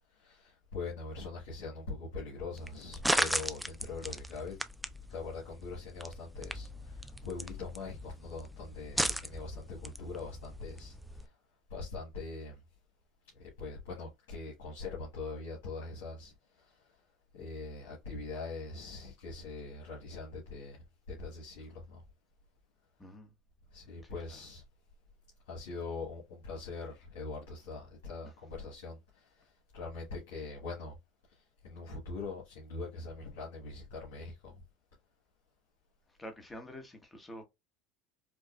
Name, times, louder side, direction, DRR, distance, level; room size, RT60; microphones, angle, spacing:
voice 1, 0.1-4.6 5.1-11.3 11.7-12.6 13.3-16.9 17.3-20.8 21.1-22.0 23.7-24.6 25.5-31.0 31.3-34.6, left 3 dB, 80° left, 1.5 m, -42 dB
sound 1, 2.5-11.3, equal, 5° right, 0.4 m, -37 dB
voice 2, 23.0-23.3 23.9-24.4 36.2-37.4, equal, 15° left, 1.1 m, -48 dB
4.7 x 2.3 x 2.4 m
supercardioid pair, 95°, 0 cm